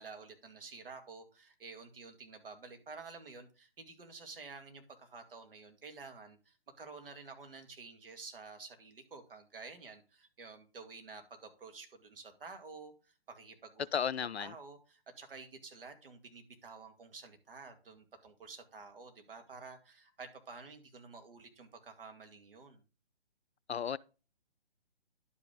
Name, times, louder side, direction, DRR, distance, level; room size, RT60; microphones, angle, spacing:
voice 1, 0.0-13.9 14.4-22.8, right 4 dB, 60° right, 2.3 m, -51 dB
voice 2, 13.9-14.5 23.7-24.0, left 7 dB, 80° left, 0.6 m, -34 dB
11.0 x 5.7 x 3.7 m
figure-of-eight pair, 145°, 32 cm